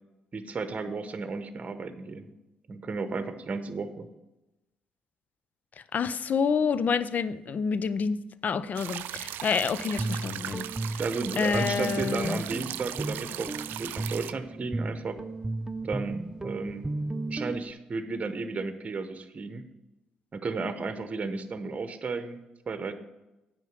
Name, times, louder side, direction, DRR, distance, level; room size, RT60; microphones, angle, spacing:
voice 1, 0.3-2.3 2.7-4.1 11.0-15.2 15.8-16.9 17.3-19.6 20.3-22.4 22.7-22.9, right 4 dB, 40° right, 9 dB, 0.9 m, -33 dB
voice 2, 5.8-8.2 8.4-11.0 11.4-12.4, left 6 dB, 50° left, 16 dB, 0.5 m, -28 dB
sound 1, 8.7-14.3, right 12 dB, 65° right, 0.3 m, -38 dB
Guitar, 9.7-17.7, right 2 dB, 20° right, 0.6 m, -35 dB
9.2 x 5.2 x 6.8 m, 0.97 s
hypercardioid pair, 45°, 4 cm